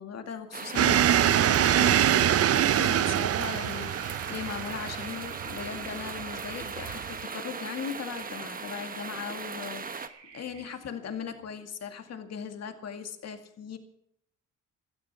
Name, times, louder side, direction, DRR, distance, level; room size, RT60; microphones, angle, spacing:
voice 1, 0.0-13.8, left 7 dB, 55° left, 7 dB, 2.2 m, -39 dB
sound 1, 0.5-10.1, right 5 dB, 30° right, 1.1 m, -39 dB
sound 2, 0.7-10.8, right 7 dB, 70° right, 3.4 m, -51 dB
sound 3, 0.8-7.2, right 10 dB, 50° right, 0.6 m, -25 dB
17.5 x 12.5 x 5.8 m, 0.71 s
cardioid pair, 90°, 30 cm